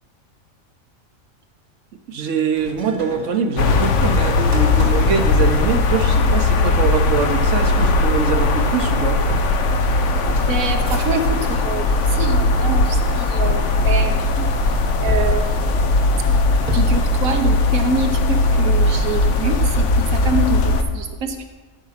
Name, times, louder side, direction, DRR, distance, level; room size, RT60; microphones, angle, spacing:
voice 1, 2.1-9.2, right 6 dB, 65° right, 7 dB, 1.1 m, -23 dB
sound 1, 2.5-11.7 12.1-12.7 13.4-14.5 15.1-17.1, right 2 dB, 35° right, 1.1 m, -33 dB
sound 2, 3.6-20.8, left 2 dB, 65° left, 1.0 m, -18 dB
voice 2, 10.5-14.5 15.0-15.5 16.7-21.4, right 3 dB, 80° right, 6 dB, 1.4 m, -25 dB
13.0 x 5.3 x 5.8 m, 1.3 s
omnidirectional pair, 1.4 m